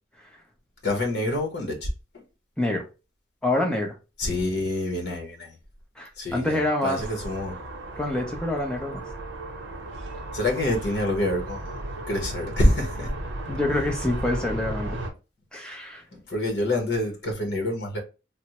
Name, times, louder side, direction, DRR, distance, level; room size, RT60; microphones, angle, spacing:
voice 1, 0.8-2.3 4.2-5.6 6.2-7.6 10.3-11.8 12.1-13.1 16.1-18.0, left 1 dB, 65° left, 0.9 m, -26 dB
voice 2, 3.4-3.9 6.0-7.0 8.0-9.0 13.5-15.0 15.5-16.0, left 1 dB, 5° left, 0.6 m, -26 dB
sound 1, 7.0-15.1, right 1 dB, 90° right, 0.7 m, -35 dB
3.4 x 2.0 x 2.9 m
head